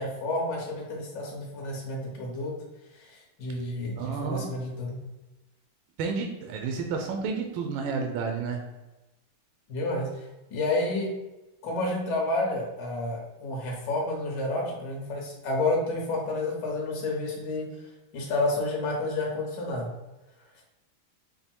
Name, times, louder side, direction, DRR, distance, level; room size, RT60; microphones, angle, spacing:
voice 1, 0.0-2.5 3.0-5.0 9.7-10.2 10.5-11.1 11.6-17.6 18.1-19.9, left 2 dB, 60° left, -1 dB, 1.7 m, -30 dB
voice 2, 4.0-4.5 6.0-8.6, right 5 dB, 75° right, 3 dB, 1.3 m, -31 dB
5.4 x 2.2 x 4.3 m, 1.0 s
omnidirectional pair, 2.3 m